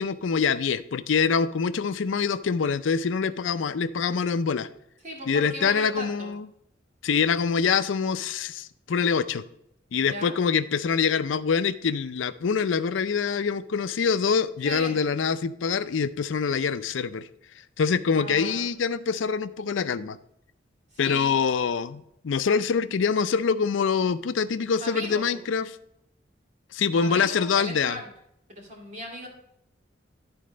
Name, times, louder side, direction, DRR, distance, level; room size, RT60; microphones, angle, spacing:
voice 1, 0.0-4.7 5.3-6.5 7.0-9.4 9.9-17.3 17.8-20.2 21.0-25.8 26.7-28.0, left 6 dB, 85° left, 13 dB, 0.5 m, -25 dB
voice 2, 5.0-6.3 10.0-10.3 14.6-14.9 18.0-18.7 20.9-21.4 24.8-25.2 26.9-28.1 28.5-29.3, equal, 40° right, -1 dB, 2.4 m, -37 dB
11.5 x 4.2 x 5.0 m, 0.75 s
head